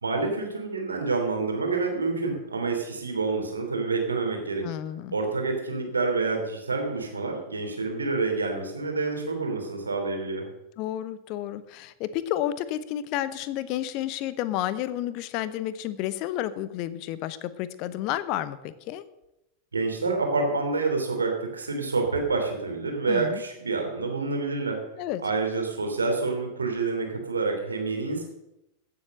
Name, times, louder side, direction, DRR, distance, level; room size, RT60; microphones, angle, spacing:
voice 1, 0.0-4.7 5.1-10.4 19.7-24.8 25.2-28.2, right 3 dB, 75° right, 3 dB, 3.1 m, -28 dB
voice 2, 4.6-5.2 10.8-19.0 23.1-23.4 25.0-25.2, left 12 dB, 40° left, 15 dB, 0.8 m, -31 dB
16.0 x 7.8 x 6.6 m, 0.87 s
figure-of-eight pair, 90°, 0 cm